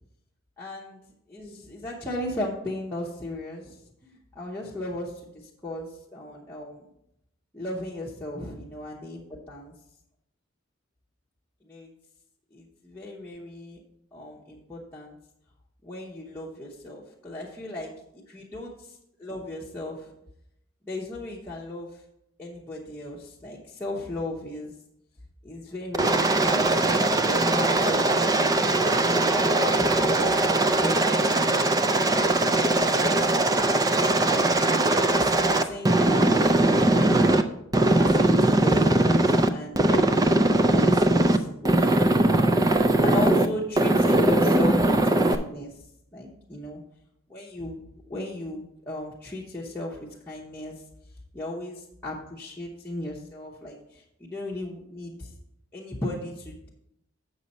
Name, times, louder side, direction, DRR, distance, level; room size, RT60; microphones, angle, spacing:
voice 1, 0.6-1.0 1.3-3.8 4.0-6.9 7.5-9.7 11.6-11.9 12.5-13.8 14.1-15.2 15.8-20.1 20.8-22.0 22.4-24.7 25.4-26.9 27.6-28.2 28.7-31.3 31.9-34.6 35.1-36.0 36.5-37.1 37.7-42.2 42.7-45.7 46.1-46.8 47.3-47.8 48.1-50.8 51.3-55.3 55.7-56.7, left 1 dB, 10° left, -6 dB, 0.9 m, -36 dB
Aircraft, 25.9-37.4 37.7-39.5 39.8-41.4 41.7-43.5 43.8-45.4, right 2 dB, 15° right, 0.3 m, -21 dB
8.2 x 6.2 x 4.2 m, 0.79 s
head